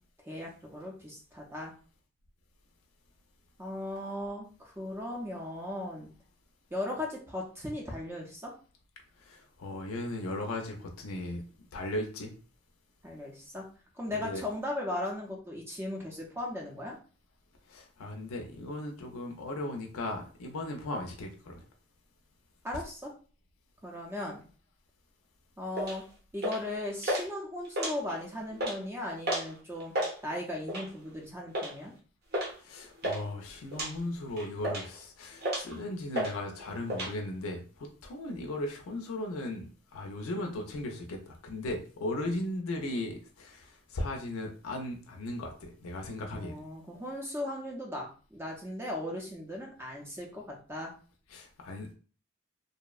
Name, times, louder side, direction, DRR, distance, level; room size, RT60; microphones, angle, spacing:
voice 1, 0.2-1.7 3.6-6.1 6.7-8.5 13.0-13.6 14.0-17.0 22.6-23.1 23.8-24.4 25.6-26.0 26.3-29.9 30.2-31.9 46.3-50.9, left 1 dB, 10° right, -1 dB, 0.5 m, -37 dB
voice 2, 9.2-11.4 11.7-12.3 14.1-14.4 17.7-21.6 32.6-46.5 51.3-51.9, left 1 dB, 80° left, 2 dB, 0.5 m, -37 dB
sound 1, 25.7-26.0 26.4-26.7 27.0-27.2 27.6-28.2 28.5-28.8 29.2-29.5 29.8-30.1 30.7-31.0 31.5-31.7 32.3-32.5 32.8-33.2 33.7-33.9 34.4-35.0 35.4-35.7 36.1-36.3 36.6-37.1, equal, 45° right, 0.7 m, -32 dB
2.6 x 2.0 x 2.3 m, 0.39 s
head